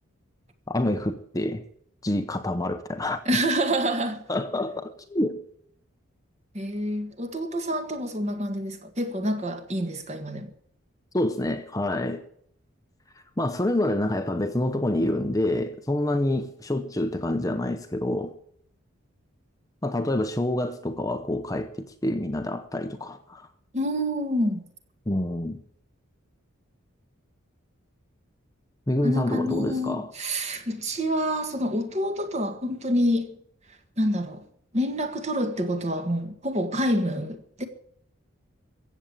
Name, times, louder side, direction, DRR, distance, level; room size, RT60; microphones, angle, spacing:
voice 1, 0.7-1.6 2.0-3.2 4.3-5.4 11.1-12.2 13.4-18.3 19.8-23.5 25.1-25.6 28.9-30.1, left 1 dB, 15° left, 0.8 m, -27 dB
voice 2, 3.2-4.2 6.5-10.5 23.7-24.6 29.0-33.3 34.0-34.4 34.7-37.6, equal, 30° right, 1.7 m, -27 dB
15.0 x 8.2 x 8.8 m
head